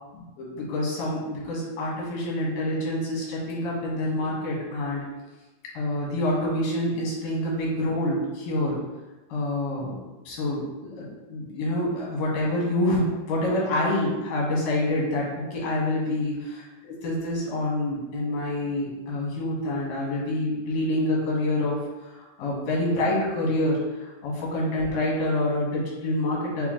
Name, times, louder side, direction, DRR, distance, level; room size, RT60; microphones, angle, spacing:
voice 1, 0.1-5.0 5.7-8.8 9.3-10.0 10.3-21.8 22.1-26.7, left 1 dB, 85° left, -4 dB, 2.9 m, -27 dB
6.6 x 2.2 x 3.7 m, 1.1 s
omnidirectional pair, 3.7 m